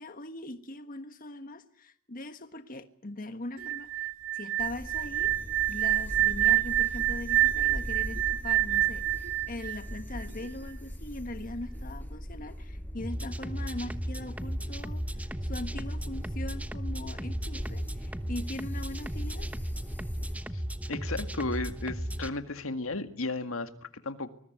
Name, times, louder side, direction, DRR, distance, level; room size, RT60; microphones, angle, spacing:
voice 1, 0.0-5.3 5.7-19.5, left 2 dB, 40° left, 9 dB, 1.4 m, -41 dB
sound 1, 3.6-10.5, right 14 dB, 80° right, 1.7 m, -27 dB
sound 2, 4.6-20.4, equal, 10° left, 5.0 m, -41 dB
sound 3, 13.0-22.3, equal, 5° right, 1.1 m, -35 dB
voice 2, 20.9-24.3, left 2 dB, 80° left, 9 dB, 2.0 m, -34 dB
24.5 x 21.5 x 9.3 m, 0.67 s
head